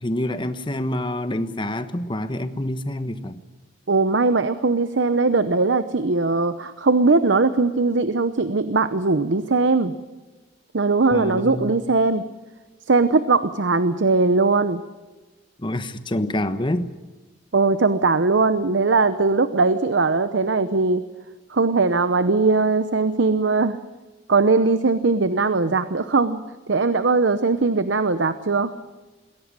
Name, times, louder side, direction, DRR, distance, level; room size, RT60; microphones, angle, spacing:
voice 1, 0.0-3.4 11.1-11.7 15.6-16.9, left 1 dB, 25° left, 10 dB, 1.2 m, -27 dB
voice 2, 3.9-9.9 10.7-12.2 12.9-14.8 17.5-21.0 21.5-23.8 24.3-26.4 26.7-28.7, right 3 dB, 75° right, 12 dB, 0.9 m, -20 dB
21.5 x 17.0 x 9.8 m, 1.2 s
head